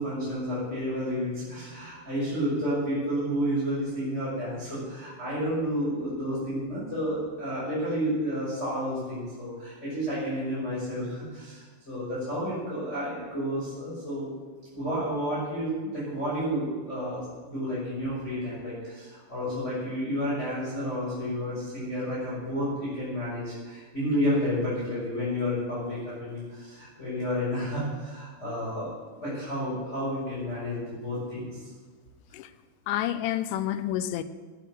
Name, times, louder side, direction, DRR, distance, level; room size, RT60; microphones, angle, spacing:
voice 1, 0.0-14.3 14.7-31.6, equal, 15° left, 6.0 m, -31 dB
voice 2, 32.9-34.2, left 12 dB, 85° left, 2.9 m, -29 dB
12.5 x 10.5 x 7.6 m
omnidirectional pair, 4.8 m